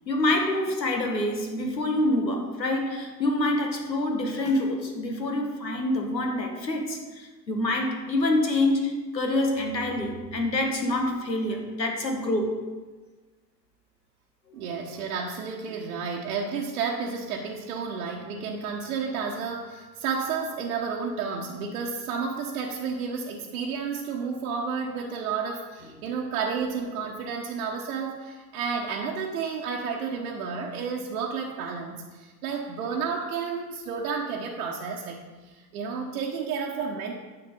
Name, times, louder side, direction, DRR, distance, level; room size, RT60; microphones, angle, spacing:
voice 1, 0.1-12.6, left 1 dB, 80° left, 2 dB, 1.8 m, -26 dB
voice 2, 14.5-37.1, right 5 dB, 60° right, -1 dB, 1.3 m, -31 dB
10.0 x 7.1 x 5.2 m, 1.3 s
figure-of-eight pair, 85°, 50 cm